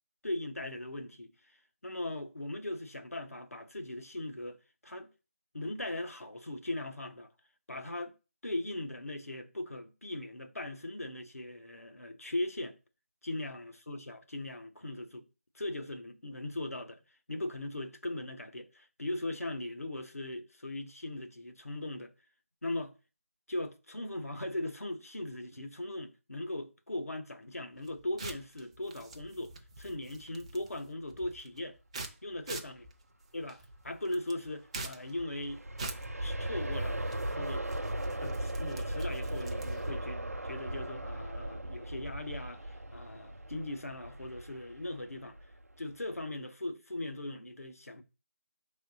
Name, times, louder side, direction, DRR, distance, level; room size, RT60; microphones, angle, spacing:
voice 1, 0.2-1.6 1.8-5.1 5.5-7.3 7.7-8.1 8.4-12.8 13.2-15.3 15.5-17.0 17.3-22.1 22.6-23.0 23.5-31.8 32.2-32.9 33.3-37.0 37.3-37.6 38.2-45.4 45.8-48.0, left 1 dB, 80° left, 0.8 m, -39 dB
sound 1, 27.7-40.0, right 3 dB, 25° right, 0.5 m, -47 dB
Aircraft, 34.9-45.8 46.2-46.3, right 1 dB, 90° right, 0.5 m, -38 dB
4.6 x 3.4 x 2.6 m
figure-of-eight pair, 160°, 8 cm